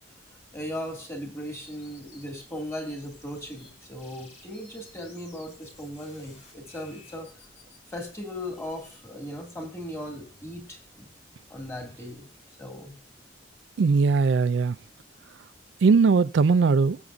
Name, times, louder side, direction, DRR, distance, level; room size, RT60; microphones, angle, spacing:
voice 1, 0.5-7.3 7.9-11.1 11.5-12.3 12.6-13.0, equal, 15° left, 2.4 m, -37 dB
sound 1, 1.5-3.7 4.0-9.0, left 3 dB, 45° left, 4.0 m, -56 dB
voice 2, 13.8-14.8 15.8-17.0, right 4 dB, 70° right, 0.4 m, -20 dB
20.0 x 7.1 x 2.6 m
head